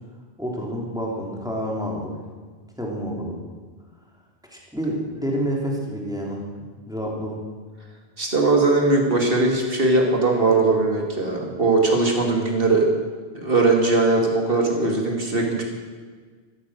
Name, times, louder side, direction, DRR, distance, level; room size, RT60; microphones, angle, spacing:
voice 1, 0.4-2.2 2.8-3.4 4.5-6.4 6.9-7.4, equal, 5° right, -2 dB, 3.2 m, -28 dB
voice 2, 8.2-12.9 13.3-15.6, right 3 dB, 60° right, 1 dB, 2.8 m, -20 dB
15.0 x 13.5 x 6.4 m, 1.5 s
omnidirectional pair, 1.1 m